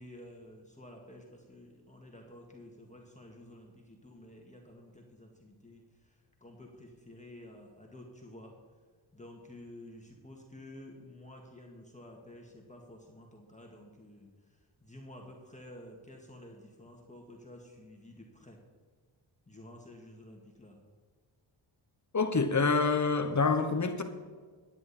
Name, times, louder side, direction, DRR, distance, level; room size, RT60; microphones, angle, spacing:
voice 1, 0.0-8.5 9.1-18.6 19.5-20.8, left 1 dB, 15° left, 2.0 m, -51 dB
voice 2, 22.1-24.0, left 4 dB, 40° left, 1.1 m, -27 dB
13.5 x 9.2 x 4.3 m
cardioid pair, 75°, 46 cm